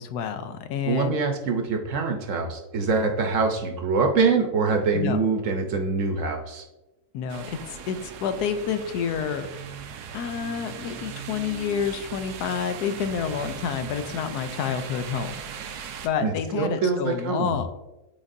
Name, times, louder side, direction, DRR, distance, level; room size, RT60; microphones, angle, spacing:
voice 1, 0.0-1.2 4.9-5.2 7.1-9.5 10.1-17.7, left 7 dB, 85° left, 9 dB, 1.1 m, -29 dB
voice 2, 0.8-6.6 16.2-17.6, right 4 dB, 60° right, 4 dB, 1.0 m, -24 dB
sound 1, 7.3-16.1, right 7 dB, 90° right, 1.2 m, -39 dB
8.9 x 4.1 x 2.6 m, 1.0 s
omnidirectional pair, 1.7 m